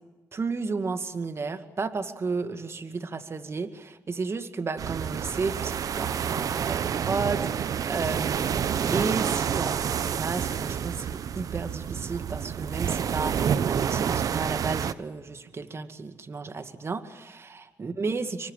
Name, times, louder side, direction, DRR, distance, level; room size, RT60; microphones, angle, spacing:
voice 1, 0.3-18.5, right 4 dB, 40° right, 9 dB, 2.3 m, -33 dB
sound 1, 4.8-14.9, right 8 dB, 65° right, 1.0 m, -28 dB
27.5 x 23.5 x 7.5 m, 1.1 s
supercardioid pair, 60°, 6 cm